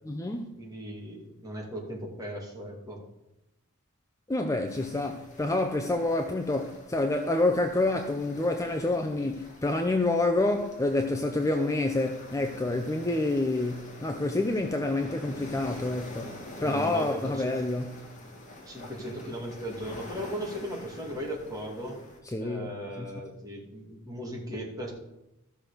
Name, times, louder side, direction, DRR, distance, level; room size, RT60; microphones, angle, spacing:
voice 1, 0.0-0.6 4.3-18.1 22.3-23.1, left 2 dB, 15° left, 0.6 m, -28 dB
voice 2, 0.6-3.0 16.5-17.1 17.4-17.5 18.7-22.0 22.4-24.9, equal, 15° right, 2.6 m, -37 dB
sound 1, 4.7-22.2, left 1 dB, 35° left, 2.4 m, -46 dB
14.5 x 6.2 x 5.1 m
head